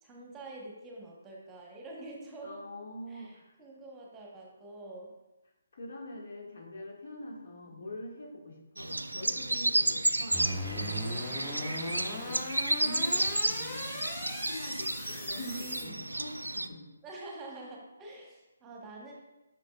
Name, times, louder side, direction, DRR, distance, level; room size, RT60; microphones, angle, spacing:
voice 1, 0.0-2.6 3.1-5.1 7.7-7.8 9.2-9.4 11.3-11.9 15.4-16.0 17.0-19.1, right 2 dB, 15° right, -1 dB, 1.2 m, -47 dB
voice 2, 2.4-3.5 5.7-14.0 14.4-16.8, left 1 dB, 60° left, 0 dB, 1.9 m, -45 dB
sound 1, 8.8-16.7, right 1 dB, 90° right, 0.4 m, -32 dB
sound 2, 10.3-15.8, equal, 15° left, 1.7 m, -39 dB
8.1 x 6.3 x 2.4 m, 1.0 s
figure-of-eight pair, 145°, 0 cm